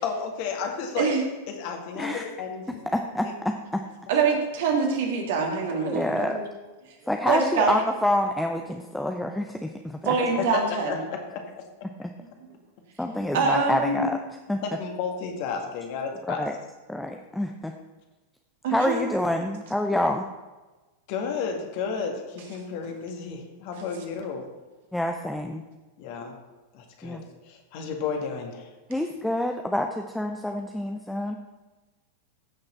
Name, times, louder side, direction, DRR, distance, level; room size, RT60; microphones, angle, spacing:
voice 1, 0.0-1.1 1.5-2.8 10.2-10.6 10.9-11.4 14.6-16.5 21.1-24.4 26.0-26.3 26.7-27.2 27.4-28.7, left 6 dB, 45° left, 3 dB, 1.8 m, -32 dB
voice 2, 2.9-3.8 5.8-6.4 7.1-10.2 12.0-12.1 13.0-14.2 14.5-14.6 16.3-16.6 16.9-17.7 18.7-20.3 24.9-25.6 27.0-27.2 28.9-31.4, left 1 dB, 5° left, 4 dB, 0.6 m, -27 dB
voice 3, 4.1-6.5 7.3-7.8 10.0-11.0 13.3-14.1 18.6-19.0, right 5 dB, 55° right, 1 dB, 2.3 m, -24 dB
15.5 x 6.5 x 4.4 m, 1.2 s
figure-of-eight pair, 90°, 0 cm